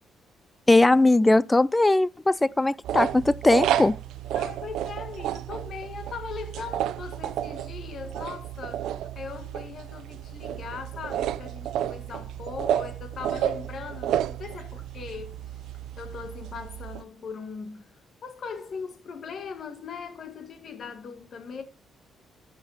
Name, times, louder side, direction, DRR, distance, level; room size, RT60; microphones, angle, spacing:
voice 1, 0.7-4.0, left 2 dB, 15° left, 0.4 m, -20 dB
sound 1, 2.8-17.0, right 11 dB, 85° right, 0.5 m, -31 dB
voice 2, 4.3-15.5 16.0-17.9 18.2-21.6, left 5 dB, 55° left, 1.8 m, -39 dB
14.0 x 5.1 x 4.0 m
cardioid pair, 90°, 0 cm